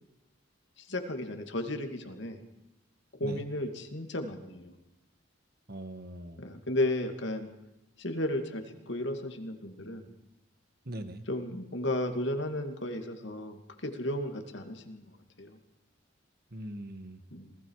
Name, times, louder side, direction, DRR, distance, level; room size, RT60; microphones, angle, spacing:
voice 1, 0.8-2.4 3.1-4.7 6.4-7.5 8.0-10.1 11.3-15.1 15.4-15.6 17.3-17.6, left 1 dB, 60° left, 6 dB, 2.5 m, -34 dB
voice 2, 5.7-6.4 10.9-11.2 16.5-17.2, right 1 dB, 50° right, 9 dB, 1.7 m, -41 dB
28.0 x 19.5 x 4.9 m, 0.95 s
head